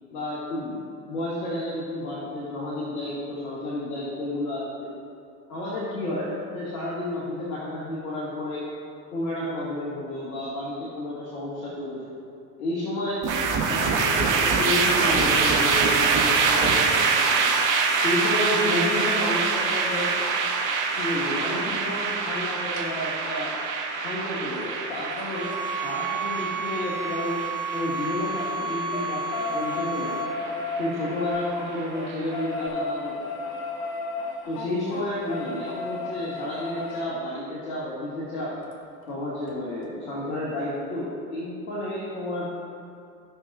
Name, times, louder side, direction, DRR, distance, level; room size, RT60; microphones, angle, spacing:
voice 1, 0.1-0.8 1.1-4.9 5.5-8.7 9.1-12.1 12.6-13.2 13.7-17.5 18.0-20.1 21.0-23.6 24.0-27.4 27.7-30.2 30.8-33.2 34.5-38.6 39.1-42.4, left 1 dB, 75° left, -7 dB, 2.0 m, -31 dB
sound 1, 13.2-32.5, right 4 dB, 40° right, 1.8 m, -25 dB
sound 2, 22.7-22.8 24.5-28.0 28.3-37.0 38.7-38.8 39.1-39.2 39.5-39.6, left 3 dB, 50° left, 1.6 m, -34 dB
sound 3, 25.3-30.3, right 4 dB, 20° right, 1.2 m, -31 dB
16.0 x 6.1 x 2.4 m, 2.4 s
hypercardioid pair, 70°, 46 cm